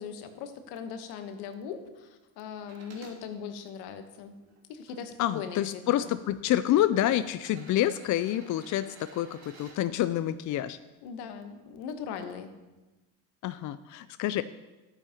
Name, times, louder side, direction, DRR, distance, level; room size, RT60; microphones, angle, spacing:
voice 1, 0.0-4.3 4.7-6.1 11.0-12.5, left 7 dB, 75° left, 8 dB, 1.2 m, -39 dB
sound 1, 2.6-3.2 3.9-4.9 5.9-6.0 7.3-9.8 11.7-11.8, right 4 dB, 65° right, 2.8 m, -53 dB
voice 2, 5.2-10.8 13.4-14.4, left 12 dB, 50° left, 13 dB, 0.5 m, -28 dB
12.5 x 8.8 x 2.9 m, 1.1 s
hypercardioid pair, 70°, 40 cm